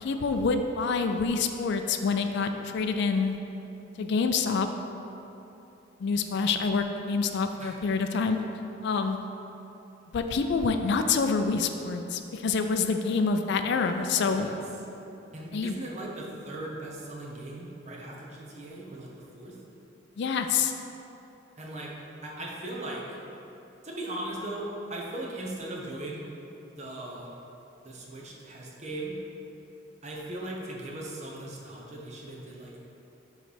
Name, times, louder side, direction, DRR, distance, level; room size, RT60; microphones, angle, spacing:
voice 1, 0.0-3.4 4.0-4.7 6.0-8.4 8.8-9.2 10.1-14.5 15.5-15.7 20.2-20.7, left 4 dB, 60° left, 7 dB, 0.4 m, -27 dB
voice 2, 14.2-14.6 15.3-19.1 19.3-19.6 21.6-21.9 22.2-23.2 23.8-26.3 26.8-27.3 27.8-29.2 30.0-32.8, right 1 dB, 35° right, -2 dB, 0.9 m, -38 dB
7.7 x 3.2 x 5.0 m, 3.0 s
head